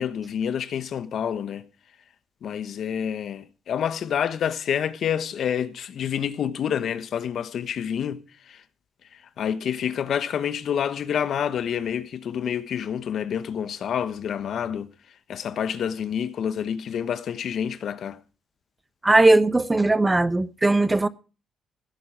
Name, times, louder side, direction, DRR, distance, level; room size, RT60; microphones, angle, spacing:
voice 1, 0.0-1.6 2.4-8.6 9.1-14.9 15.3-18.2, left 8 dB, 65° left, 1.2 m, -28 dB
voice 2, 19.0-21.1, right 2 dB, 15° right, 0.8 m, -19 dB
16.0 x 8.8 x 6.0 m
cardioid pair, 90°, 0 cm